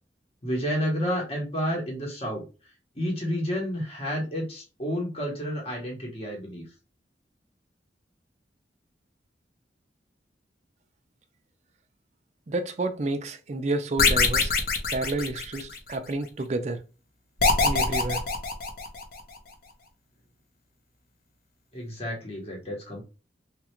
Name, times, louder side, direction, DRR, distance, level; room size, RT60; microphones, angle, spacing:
voice 1, 0.4-2.4 3.0-6.6 21.7-23.0, equal, 35° left, 1.0 m, -30 dB
voice 2, 12.5-14.5 14.9-16.8 17.6-18.2, right 2 dB, 40° right, 0.4 m, -30 dB
sound 1, 14.0-15.9 17.4-19.2, left 4 dB, 55° left, 0.7 m, -24 dB
3.2 x 2.4 x 2.9 m
head